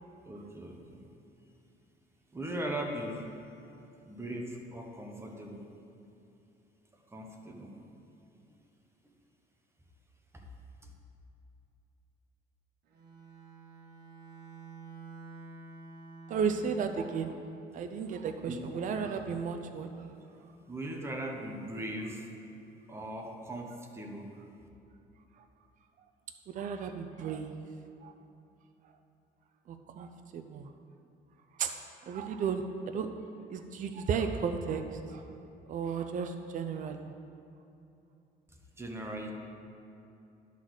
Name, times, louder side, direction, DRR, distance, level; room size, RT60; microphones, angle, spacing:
voice 1, 0.2-1.0 2.3-3.3 4.0-5.7 7.1-7.9 10.3-10.4 10.8-10.9 18.5-18.6 20.7-22.3 22.9-24.3 38.8-39.3, right 1 dB, 15° right, 2 dB, 1.1 m, -39 dB
Bowed string instrument, 12.9-17.4, right 4 dB, 70° right, 1.3 m, -49 dB
voice 2, 16.3-17.3 17.7-19.9 26.5-27.6 28.0-28.1 29.7-30.7 31.6-31.7 32.1-33.1 33.5-35.2 35.7-37.1, right 6 dB, 50° right, 7 dB, 0.6 m, -34 dB
11.0 x 4.1 x 6.4 m, 2.8 s
cardioid pair, 110°, 17 cm